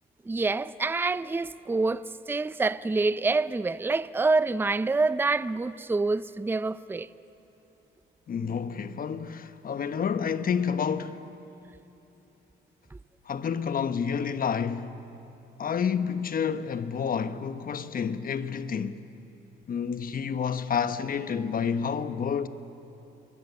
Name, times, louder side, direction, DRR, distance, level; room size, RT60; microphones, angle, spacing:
voice 1, 0.3-7.1 12.9-13.0, right 3 dB, 10° right, 0.5 m, -27 dB
voice 2, 8.3-11.2 13.3-15.0 15.6-19.0 19.7-22.5, left 7 dB, 45° left, 1.0 m, -29 dB
28.5 x 22.5 x 6.9 m
cardioid pair, 90°, 20 cm